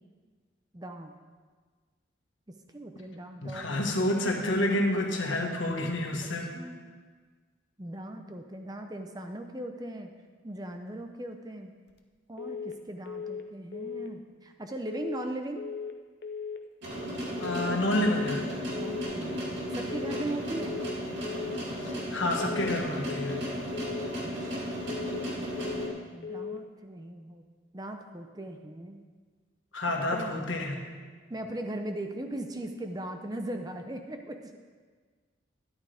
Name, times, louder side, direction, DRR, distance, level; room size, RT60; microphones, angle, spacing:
voice 1, 0.7-1.1 2.5-3.8 6.5-6.8 7.8-10.1 10.4-11.7 12.3-15.6 18.7-19.4 19.7-20.7 24.2-24.8 26.1-27.4 27.7-29.0 29.9-30.3 31.3-34.6, right 1 dB, 20° right, 5 dB, 0.6 m, -39 dB
voice 2, 3.4-6.5 17.4-18.5 21.8-23.4 29.7-30.8, left 1 dB, 80° left, 1 dB, 1.6 m, -29 dB
sound 1, 12.4-12.8 13.1-13.5 13.7-14.1 14.9-15.3 15.6-16.0 16.2-16.6 17.4-17.8 18.1-18.5 18.7-19.1 19.9-20.3 20.6-21.0 21.2-21.6 22.4-22.8 23.1-23.5 23.7-24.1 24.9-25.3 25.6-26.0 26.2-26.6, left 6 dB, 55° left, 0.7 m, -37 dB
sound 2, 16.8-25.9, equal, 70° right, 2.7 m, -35 dB
13.0 x 11.0 x 3.5 m, 1.5 s
head